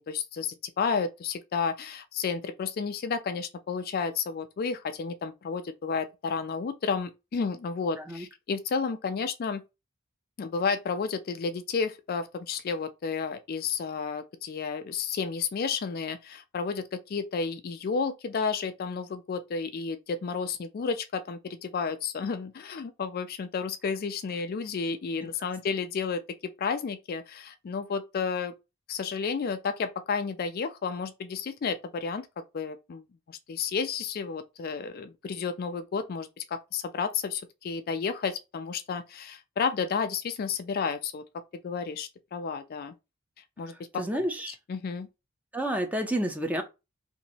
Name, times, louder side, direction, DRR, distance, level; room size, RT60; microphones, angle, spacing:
voice 1, 0.0-9.6 10.4-28.5 28.9-32.3 32.5-41.2 41.6-42.9 43.6-44.0 44.5-45.1, left 5 dB, 45° left, 0.3 m, -32 dB
voice 2, 44.0-44.5 45.5-46.6, right 1 dB, 5° right, 0.5 m, -29 dB
2.9 x 2.6 x 4.0 m
head